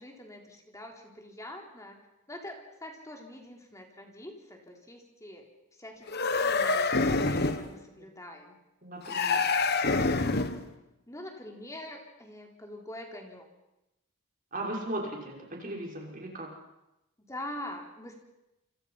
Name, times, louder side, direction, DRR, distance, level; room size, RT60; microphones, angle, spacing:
voice 1, 0.0-2.0 2.3-5.5 5.8-8.6 11.1-13.5 17.2-18.2, left 1 dB, 15° left, 2 dB, 3.9 m, -44 dB
sound 1, 6.1-7.7 9.1-10.7, left 3 dB, 50° left, 1.5 m, -26 dB
voice 2, 8.8-9.4 14.5-16.5, right 1 dB, 40° right, -1 dB, 6.0 m, -37 dB
28.5 x 26.5 x 5.8 m, 0.90 s
head